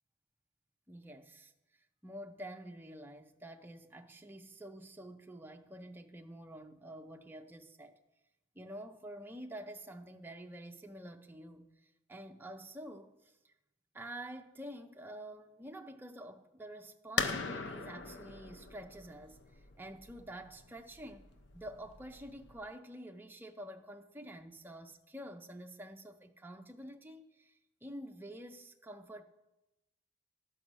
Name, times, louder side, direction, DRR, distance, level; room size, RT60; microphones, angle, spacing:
voice 1, 0.9-1.5 2.0-8.0 8.6-11.7 12.1-13.5 13.9-29.2, right 1 dB, 10° right, 0.4 m, -48 dB
sound 1, 17.2-22.7, left 5 dB, 55° left, 0.6 m, -40 dB
12.0 x 5.4 x 6.1 m
head